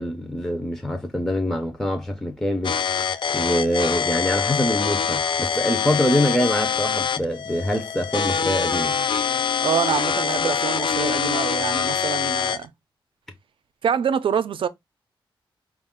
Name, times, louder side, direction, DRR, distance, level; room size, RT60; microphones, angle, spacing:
voice 1, 0.0-2.8 3.3-8.9, equal, 5° left, 0.6 m, -24 dB
sound 1, 2.6-12.6, left 7 dB, 60° left, 0.5 m, -24 dB
voice 2, 9.6-12.7 13.8-14.7, right 8 dB, 70° right, 0.5 m, -25 dB
4.8 x 2.4 x 3.6 m
wide cardioid pair, 115°, 9 cm